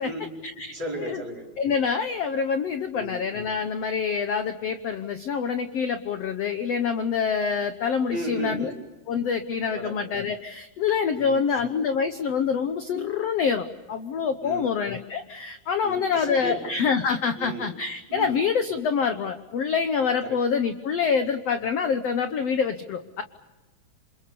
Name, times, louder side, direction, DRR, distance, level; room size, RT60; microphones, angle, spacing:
voice 1, 0.0-1.5 2.9-3.2 8.1-8.8 9.7-10.0 11.1-11.6 14.4-14.7 15.8-16.6 17.4-17.7 18.1-18.4 20.2-20.4, right 1 dB, 25° right, -1 dB, 5.2 m, -35 dB
voice 2, 1.6-8.7 9.1-23.2, left 6 dB, 80° left, 8 dB, 1.4 m, -26 dB
28.0 x 26.5 x 6.9 m, 1.1 s
omnidirectional pair, 4.5 m